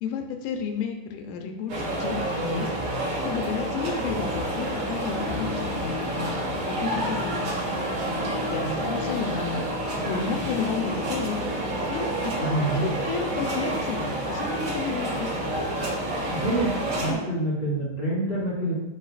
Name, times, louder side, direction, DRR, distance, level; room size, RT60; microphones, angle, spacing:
voice 1, 0.0-2.7 3.2-6.3 6.7-7.5 8.5-9.6 10.0-11.4 11.9-12.5 12.7-15.3 17.1-17.2, left 6 dB, 85° left, 4 dB, 3.2 m, -31 dB
sound 1, 1.7-17.1, right 1 dB, 55° right, 2.8 m, -29 dB
voice 2, 12.4-12.9 16.3-16.7 17.0-18.7, right 1 dB, 80° right, -8 dB, 0.5 m, -26 dB
10.5 x 4.6 x 2.4 m, 0.94 s
omnidirectional pair, 5.8 m